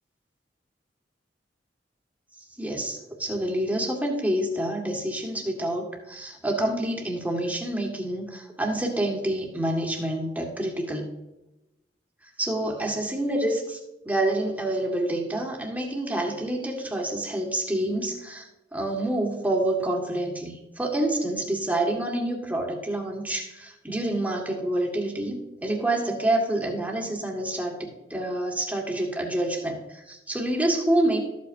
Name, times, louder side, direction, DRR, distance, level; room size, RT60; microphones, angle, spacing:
voice 1, 2.6-11.1 12.4-13.8 14.0-18.5 18.7-31.2, right 1 dB, 10° right, 0 dB, 1.7 m, -27 dB
13.5 x 8.3 x 2.7 m, 0.95 s
head